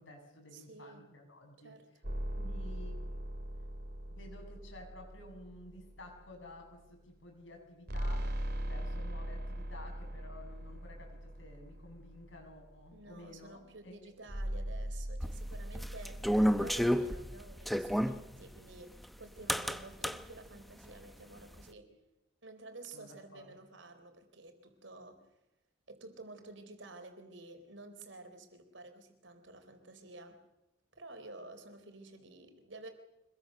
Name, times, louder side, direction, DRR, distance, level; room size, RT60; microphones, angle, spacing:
voice 1, 0.0-1.8 2.4-3.3 4.1-8.4 8.6-13.9 22.9-23.6, left 1 dB, 80° left, 2 dB, 7.2 m, -52 dB
voice 2, 0.5-1.1 1.6-1.9 12.9-16.3 16.5-21.9 22.4-25.3 25.9-30.4 30.9-32.9, right 2 dB, 75° right, 7 dB, 4.0 m, -51 dB
sound 1, 2.0-6.5 7.9-12.7 14.3-18.6, right 1 dB, 55° right, 3.0 m, -41 dB
sound 2, 15.2-18.2 19.5-20.2, equal, ahead, 0.7 m, -30 dB
26.0 x 21.5 x 6.6 m, 0.96 s
head